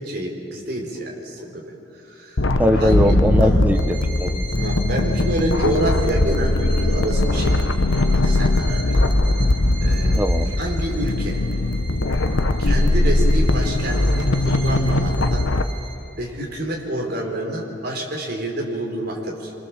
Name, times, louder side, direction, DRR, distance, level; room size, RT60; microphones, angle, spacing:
voice 1, 0.0-2.5 2.7-3.1 3.4-3.6 4.5-7.6 8.1-9.0 9.3-9.4 9.8-10.2 10.6-11.4 12.6-15.5 16.1-19.5, right 1 dB, 50° right, -1 dB, 4.1 m, -28 dB
sound 1, 2.4-15.6, left 2 dB, 70° left, 1.0 m, -20 dB
voice 2, 2.6-4.5 10.2-10.5, equal, 10° right, 7 dB, 1.0 m, -20 dB
Bowed string instrument, 3.7-16.2, right 4 dB, 70° right, 3.9 m, -39 dB
27.5 x 24.5 x 7.3 m, 2.9 s
head